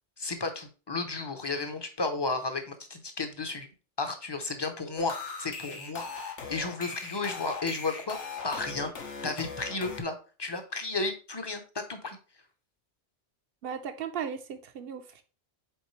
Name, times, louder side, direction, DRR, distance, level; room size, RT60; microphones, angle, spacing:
voice 1, 0.2-3.7 4.0-8.2 8.4-8.9 9.2-12.2, left 3 dB, 25° left, 0.7 m, -33 dB
sound 1, 5.0-10.0, left 5 dB, 75° left, 1.4 m, -39 dB
voice 2, 13.6-15.2, right 7 dB, 55° right, 0.9 m, -36 dB
8.0 x 3.7 x 3.2 m
omnidirectional pair, 1.2 m